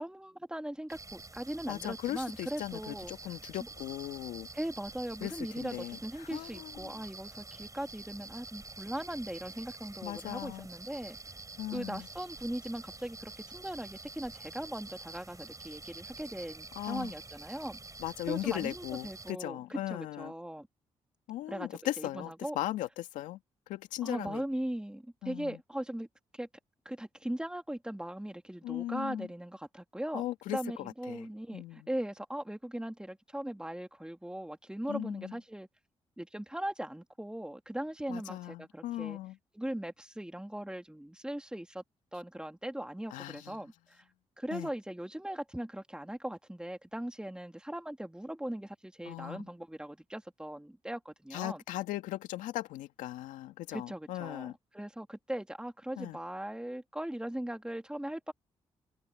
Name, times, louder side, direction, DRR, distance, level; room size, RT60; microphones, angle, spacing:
voice 1, 0.0-3.1 4.5-11.2 11.7-17.8 18.3-20.7 21.5-21.7 22.0-22.6 24.0-26.1 26.3-26.5 26.8-30.2 30.5-35.7 36.2-39.2 39.5-41.8 42.1-44.0 44.4-51.6 53.7-58.3, right 1 dB, 5° right, 3.3 m, -39 dB
sound 1, 0.9-19.3, right 3 dB, 25° right, 7.3 m, -48 dB
voice 2, 1.7-4.5 5.2-6.9 10.0-10.7 11.6-12.1 16.8-17.1 18.0-20.3 21.3-23.4 23.7-24.4 25.2-25.6 28.6-29.3 30.1-31.3 31.5-31.9 34.9-35.3 38.1-39.4 43.1-43.6 44.5-44.7 49.0-49.5 51.3-54.5 56.0-56.2, left 15 dB, 85° left, 2.2 m, -38 dB
hypercardioid pair, 45°, 13 cm